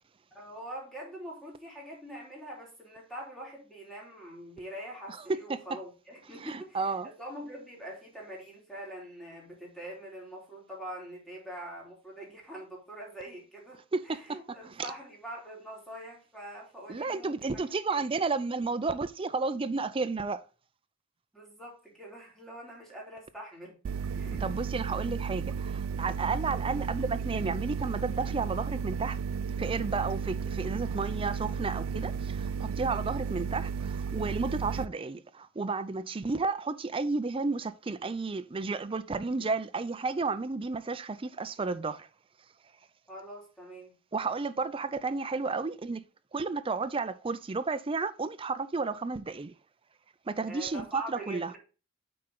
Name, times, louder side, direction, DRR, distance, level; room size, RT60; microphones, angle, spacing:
voice 1, 0.3-17.6 17.9-18.1 21.3-23.8 24.1-24.5 26.4-26.5 43.1-43.9 50.5-51.6, right 1 dB, ahead, 3.3 m, -44 dB
voice 2, 6.4-7.1 13.9-14.4 14.6-14.9 16.9-20.4 24.4-29.2 29.6-42.1 44.1-46.0 46.3-49.5 50.3-51.5, right 4 dB, 25° right, 0.5 m, -32 dB
sound 1, 23.8-34.9, right 6 dB, 85° right, 0.3 m, -33 dB
7.8 x 4.4 x 3.8 m
head